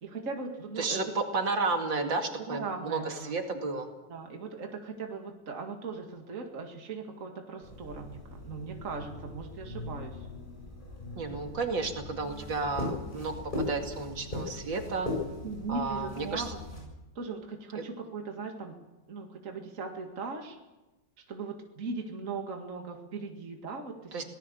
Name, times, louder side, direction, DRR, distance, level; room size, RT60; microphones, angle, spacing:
voice 1, 0.0-1.0 2.5-3.4 4.1-10.3 15.4-16.6 17.2-20.6 21.3-24.2, right 4 dB, 40° right, 3 dB, 2.3 m, -39 dB
voice 2, 0.8-3.9 11.2-15.1 15.7-16.4 17.8-17.9 24.1-24.2, right 3 dB, 65° right, 4 dB, 3.0 m, -32 dB
sound 1, 7.6-16.8, left 2 dB, 25° left, 7.5 m, -39 dB
26.0 x 19.0 x 7.0 m, 1.1 s
omnidirectional pair, 2.2 m